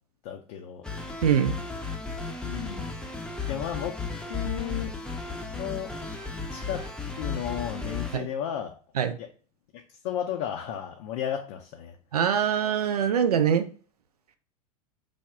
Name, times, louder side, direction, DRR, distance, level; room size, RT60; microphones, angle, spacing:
voice 1, 0.2-0.8 2.4-2.9 3.5-4.0 4.3-4.9 5.5-5.9 6.5-6.8 7.2-8.7 9.2-9.3 9.9-12.0, left 10 dB, 55° left, 3 dB, 0.5 m, -33 dB
sound 1, 0.8-8.2, left 4 dB, 5° left, 0.5 m, -34 dB
voice 2, 1.2-1.6 8.1-8.2 9.0-9.1 12.1-13.7, right 8 dB, 80° right, 9 dB, 0.4 m, -23 dB
3.4 x 2.1 x 3.5 m, 0.41 s
figure-of-eight pair, 80°, 19 cm